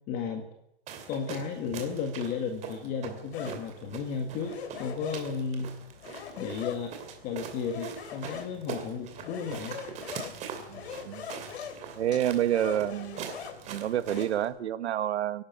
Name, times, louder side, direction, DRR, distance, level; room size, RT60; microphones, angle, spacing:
voice 1, 0.1-0.5 1.1-5.7 6.4-6.9 7.2-9.8, left 6 dB, 25° left, 4 dB, 1.9 m, -34 dB
sound 1, 0.9-14.5, right 7 dB, 20° right, 2.6 m, -43 dB
sound 2, 3.3-14.3, left 7 dB, 70° left, 3.4 m, -43 dB
voice 2, 10.7-11.3 11.9-13.2 13.7-15.4, right 11 dB, 80° right, 13 dB, 1.5 m, -28 dB
24.5 x 11.5 x 9.4 m, 0.84 s
supercardioid pair, 165°, 33 cm